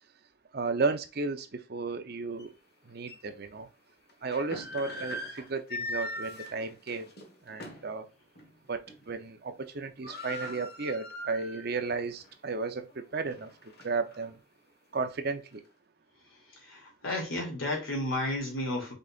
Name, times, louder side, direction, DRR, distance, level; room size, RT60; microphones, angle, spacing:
voice 1, 0.5-2.5 2.9-3.7 4.2-7.1 7.5-8.0 8.7-12.8 13.1-13.5 13.8-14.3 14.9-15.4, right 4 dB, 50° right, 0.7 m, -33 dB
sound 1, 2.4-2.5 3.1-3.2 4.1-7.9 8.3-8.5 8.9-9.3 9.5-9.6 9.8-11.8 12.2-12.3 12.9-14.2, left 1 dB, 50° left, 1.2 m, -40 dB
voice 2, 16.5-18.9, left 1 dB, 85° left, 2.6 m, -32 dB
5.4 x 3.9 x 2.4 m
head